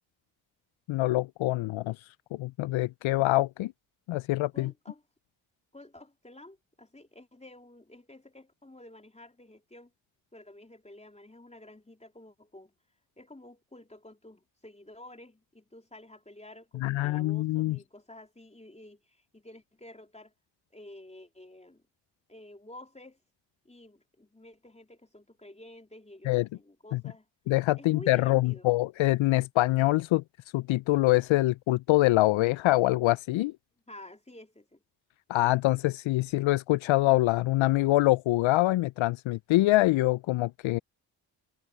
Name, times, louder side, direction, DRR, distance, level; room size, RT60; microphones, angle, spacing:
voice 1, 0.9-2.0 2.4-3.7 4.1-4.7 16.8-17.8 26.3-26.5 26.9-27.0 27.5-30.2 30.5-33.5 35.3-40.8, left 18 dB, 70° left, 0.6 m, -25 dB
voice 2, 4.5-5.0 5.7-9.9 10.3-12.7 13.2-20.3 20.7-21.8 22.3-23.2 23.6-27.2 27.8-28.7 33.9-34.8, left 1 dB, 15° left, 3.5 m, -50 dB
hypercardioid pair, 40°, 49 cm